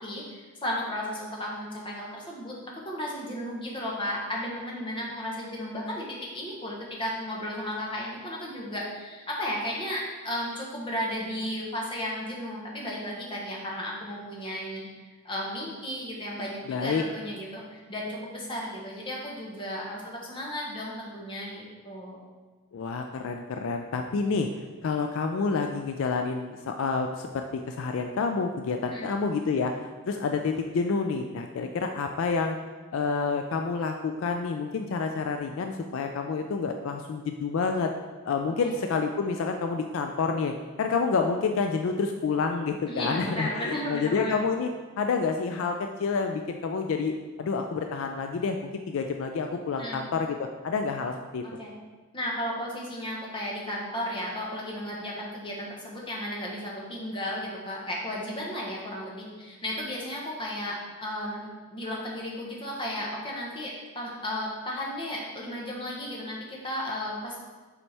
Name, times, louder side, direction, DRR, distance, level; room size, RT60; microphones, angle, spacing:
voice 1, 0.0-22.2 28.9-29.1 38.6-38.8 42.9-44.4 49.8-50.0 51.4-51.7 52.1-67.4, left 1 dB, 20° left, -3 dB, 1.0 m, -34 dB
voice 2, 16.7-17.0 22.7-24.5 24.8-32.6 32.9-37.9 38.3-44.7 45.0-51.4, left 4 dB, 60° left, 5 dB, 0.3 m, -28 dB
6.9 x 4.3 x 3.3 m, 1.4 s
head